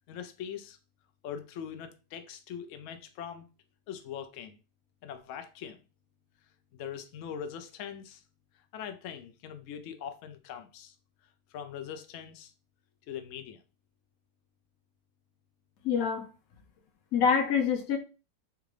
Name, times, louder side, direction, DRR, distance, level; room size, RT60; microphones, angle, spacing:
voice 1, 0.1-0.8 1.2-3.5 3.9-4.6 5.0-5.8 6.7-8.2 8.7-10.9 11.5-12.5 13.1-13.6, left 8 dB, 80° left, 0.7 m, -41 dB
voice 2, 15.8-16.3 17.1-18.0, left 6 dB, 60° left, 1.1 m, -25 dB
3.6 x 3.5 x 3.2 m
omnidirectional pair, 1.9 m